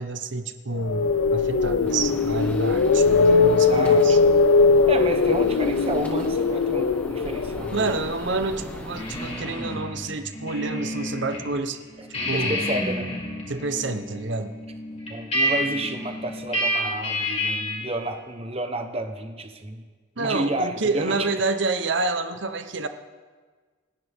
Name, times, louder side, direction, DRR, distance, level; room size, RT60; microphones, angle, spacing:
voice 1, 0.0-4.2 7.7-11.8 12.1-12.6 13.5-14.6 20.2-22.9, right 3 dB, 60° right, 9 dB, 0.9 m, -28 dB
sound 1, 0.7-8.8, left 4 dB, 75° left, 0.5 m, -20 dB
Gunshot gunfire, 1.9-9.7, equal, 5° left, 1.4 m, -39 dB
voice 2, 3.7-4.2 4.9-7.9 12.3-13.1 15.1-19.8 20.2-21.3, right 1 dB, 30° right, 6 dB, 1.1 m, -30 dB
sound 2, 8.9-11.4 11.7-17.9, left 1 dB, 35° left, 4.2 m, -29 dB
29.0 x 10.5 x 3.6 m, 1.5 s
head